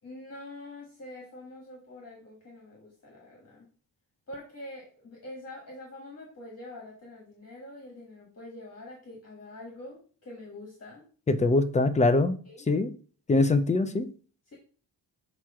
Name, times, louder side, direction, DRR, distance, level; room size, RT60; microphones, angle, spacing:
voice 1, 0.0-3.7 4.3-11.0 12.5-12.6, left 1 dB, 35° left, 1.6 m, -45 dB
voice 2, 11.3-12.4 12.7-12.9 13.3-14.1, left 2 dB, 20° left, 0.3 m, -23 dB
6.1 x 3.0 x 5.6 m
wide cardioid pair, 175°, 45 cm